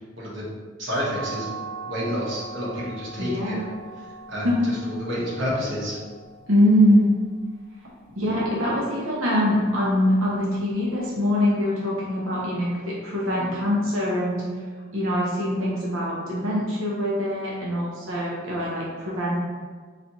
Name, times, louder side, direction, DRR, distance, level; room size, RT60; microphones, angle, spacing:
voice 1, 0.2-0.5 0.8-1.5 1.8-3.6 4.3-4.5 4.9-6.0, equal, 70° right, -6 dB, 1.1 m, -29 dB
sound 1, 0.9-6.7, right 4 dB, 75° left, 1.0 m, -39 dB
voice 2, 3.2-3.6 4.4-4.6 6.5-7.1 8.2-14.4 14.9-19.4, equal, 90° right, -6 dB, 1.0 m, -23 dB
4.1 x 3.2 x 2.8 m, 1.5 s
head